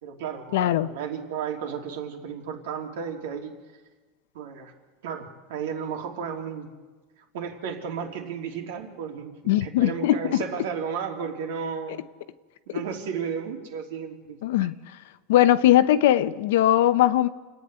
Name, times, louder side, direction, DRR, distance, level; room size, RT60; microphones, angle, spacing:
voice 1, 0.0-3.5 4.3-4.7 5.0-6.7 7.3-9.3 9.6-12.0 12.7-14.4, right 7 dB, 80° right, 2 dB, 3.2 m, -33 dB
voice 2, 0.5-0.9 9.5-10.4 14.4-14.7 15.3-17.3, left 13 dB, 80° left, 12 dB, 0.9 m, -20 dB
28.5 x 9.5 x 9.7 m, 1.3 s
supercardioid pair, 150°, 0 cm